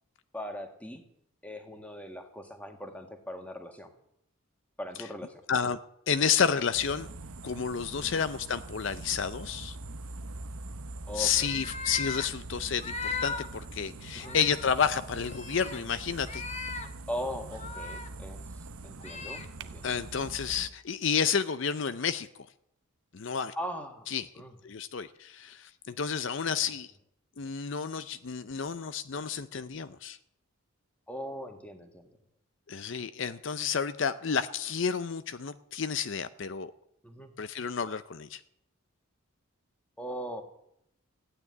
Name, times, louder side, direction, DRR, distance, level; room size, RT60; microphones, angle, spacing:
voice 1, 0.3-1.0 1.4-3.9 4.8-5.4 8.0-8.2 11.1-11.5 14.1-14.4 17.1-19.9 23.6-24.1 24.3-24.5 31.1-32.2 37.0-37.3 40.0-40.4, equal, 5° left, 5 dB, 1.7 m, -40 dB
voice 2, 5.5-5.8 6.1-7.1 7.4-9.8 11.1-16.4 19.8-22.5 23.1-23.5 24.1-24.3 24.6-26.9 27.4-30.2 32.7-36.7 37.4-38.4, left 6 dB, 60° left, 12 dB, 0.6 m, -30 dB
sound 1, 6.7-20.7, right 2 dB, 85° right, 0.9 m, -43 dB
sound 2, 11.3-12.3 12.8-13.5 13.9-14.0 14.2-14.7 15.2-15.8 16.2-16.9 17.4-18.1 19.0-19.5, left 5 dB, 30° left, 1.2 m, -37 dB
15.0 x 9.5 x 9.6 m, 0.77 s
head